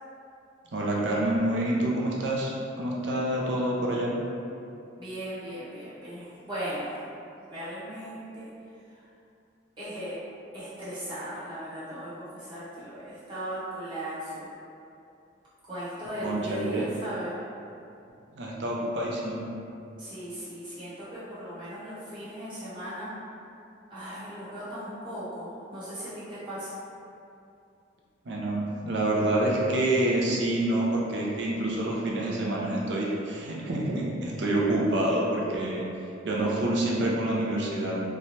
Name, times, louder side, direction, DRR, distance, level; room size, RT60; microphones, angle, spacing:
voice 1, 0.7-2.5 2.8-4.1 16.2-16.8 18.4-19.4 28.3-35.8 36.2-38.1, right 1 dB, 65° right, -4 dB, 0.5 m, -27 dB
voice 2, 5.0-7.0 7.5-8.5 8.9-9.0 9.8-10.2 10.5-14.5 15.6-17.4 20.0-23.1 23.9-26.8, equal, 25° right, -12 dB, 1.1 m, -37 dB
3.0 x 2.2 x 2.7 m, 2.6 s
head